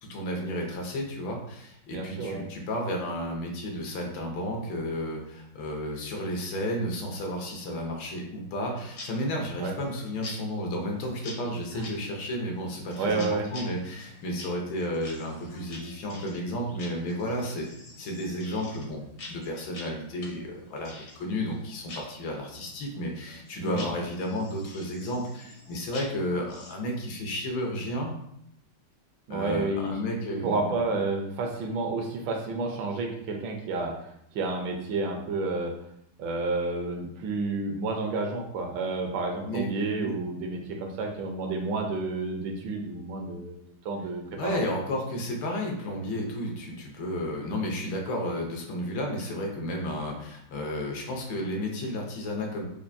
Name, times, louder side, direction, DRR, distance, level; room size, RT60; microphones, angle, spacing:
voice 1, 0.1-17.7 18.0-28.1 29.3-30.7 39.4-40.1 44.4-52.6, equal, 80° left, 0 dB, 1.6 m, -32 dB
voice 2, 1.9-2.4 9.6-9.7 11.7-11.8 13.0-13.5 23.6-23.8 29.3-29.9 30.4-33.9 34.3-35.7 36.2-43.6 43.8-44.6, right 3 dB, 75° right, 2 dB, 1.3 m, -30 dB
sound 1, 8.9-27.0, left 2 dB, 55° left, 0.8 m, -47 dB
4.5 x 2.5 x 2.5 m, 0.73 s
omnidirectional pair, 2.2 m